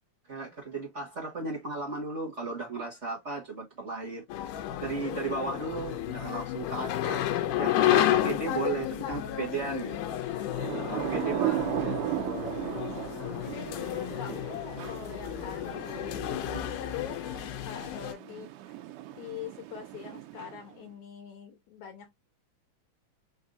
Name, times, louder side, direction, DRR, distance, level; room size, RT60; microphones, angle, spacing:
voice 1, 0.3-4.5 4.8-7.3 7.6-10.0 10.9-11.6, right 3 dB, 45° right, 0.9 m, -35 dB
sound 1, 4.3-18.1, left 12 dB, 90° left, 2.2 m, -31 dB
Thunder / Rain, 10.3-20.8, right 14 dB, 80° right, 2.1 m, -36 dB
voice 2, 13.4-17.2 17.6-18.8 19.1-22.1, left 8 dB, 70° left, 2.3 m, -43 dB
5.4 x 2.7 x 3.7 m
omnidirectional pair, 3.7 m